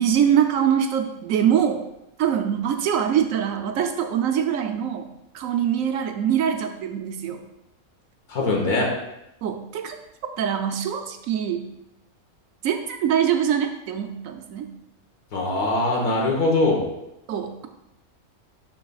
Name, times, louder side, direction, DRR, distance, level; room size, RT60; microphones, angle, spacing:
voice 1, 0.0-1.8 2.2-5.1 5.3-7.4 9.4-10.0 10.4-11.7 12.6-14.7 17.3-17.7, right 9 dB, 70° right, 5 dB, 0.9 m, -23 dB
voice 2, 8.3-8.9 15.3-16.9, left 2 dB, 85° left, -1 dB, 1.8 m, -22 dB
11.5 x 4.0 x 2.3 m, 0.86 s
omnidirectional pair, 1.6 m